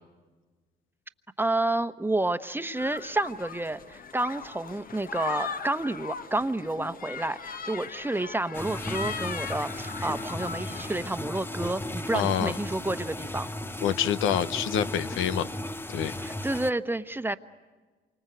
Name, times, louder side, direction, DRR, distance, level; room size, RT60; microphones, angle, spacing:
voice 1, 1.4-13.5 16.2-17.4, right 2 dB, 10° right, 10 dB, 1.1 m, -30 dB
sound 1, 2.8-11.1, left 5 dB, 45° left, 1.2 m, -39 dB
sound 2, 8.5-16.7, left 1 dB, 10° left, 0.9 m, -35 dB
voice 2, 12.1-12.6 13.8-15.5 15.9-16.2, left 10 dB, 85° left, 12 dB, 0.9 m, -27 dB
28.0 x 25.0 x 7.9 m, 1.4 s
cardioid pair, 90°, 20 cm